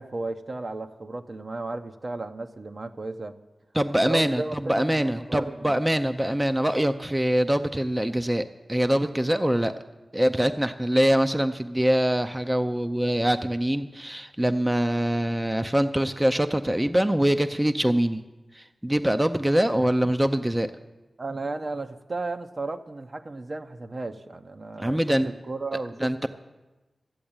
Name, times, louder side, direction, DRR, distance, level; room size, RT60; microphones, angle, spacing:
voice 1, 0.0-3.4 4.0-5.8 21.2-26.3, right 3 dB, 50° right, 7 dB, 0.8 m, -34 dB
voice 2, 3.7-9.7 10.1-18.2 18.5-20.7 24.8-25.3 26.0-26.3, right 1 dB, 15° right, 9 dB, 0.6 m, -24 dB
13.5 x 7.8 x 8.8 m, 1.1 s
cardioid pair, 55°, 0 cm